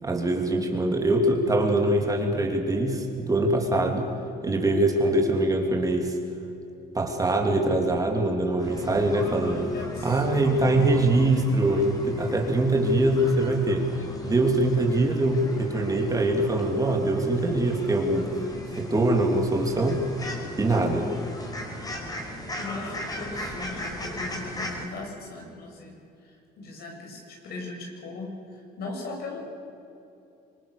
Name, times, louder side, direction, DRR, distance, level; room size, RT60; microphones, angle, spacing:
voice 1, 0.0-4.1 4.4-6.2 6.9-9.7 10.0-13.9 14.2-18.3 18.7-20.0 20.6-21.1, right 1 dB, 20° right, 2 dB, 3.2 m, -23 dB
sound 1, 8.6-24.8, left 1 dB, 20° left, 4.7 m, -37 dB
voice 2, 9.7-10.8 22.6-25.9 26.2-29.4, left 3 dB, 70° left, 1 dB, 7.5 m, -38 dB
26.0 x 22.5 x 6.8 m, 2.8 s
cardioid pair, 110°, 17 cm